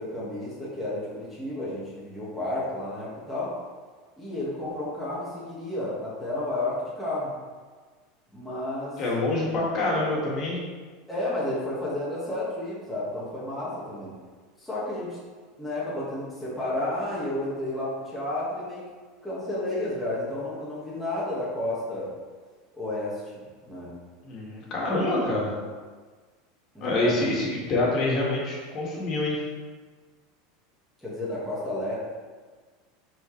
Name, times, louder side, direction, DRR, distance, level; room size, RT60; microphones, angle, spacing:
voice 1, 0.0-3.5 4.2-7.3 8.3-9.0 11.1-14.2 14.6-15.2 15.6-18.9 19.2-22.1 22.7-23.9 26.7-27.1 31.0-31.9, left 1 dB, ahead, -10 dB, 1.6 m, -31 dB
voice 2, 9.0-10.6 24.2-25.5 26.8-29.4, left 2 dB, 30° left, -4 dB, 2.1 m, -26 dB
11.5 x 4.4 x 3.3 m, 1.5 s
supercardioid pair, 170°, 0 cm